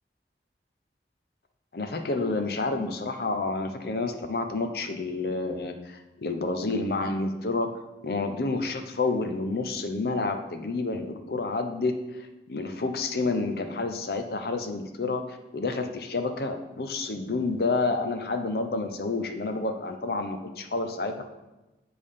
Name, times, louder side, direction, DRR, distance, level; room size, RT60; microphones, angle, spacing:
voice 1, 1.7-7.7 8.0-21.2, left 3 dB, 60° left, 6 dB, 0.7 m, -29 dB
8.6 x 3.4 x 5.5 m, 1.0 s
head